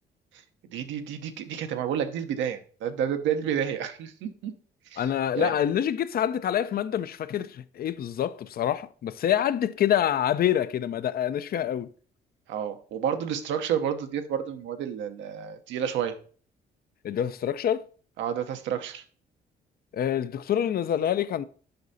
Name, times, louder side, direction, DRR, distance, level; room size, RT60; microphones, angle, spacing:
voice 1, 0.7-4.5 4.9-5.1 5.3-5.6 12.5-16.2 18.2-19.0, right 8 dB, 85° right, 0.8 m, -30 dB
voice 2, 5.0-11.9 17.0-17.9 19.9-21.4, left 10 dB, 55° left, 0.5 m, -26 dB
7.8 x 5.4 x 2.7 m
supercardioid pair, 70°, 19 cm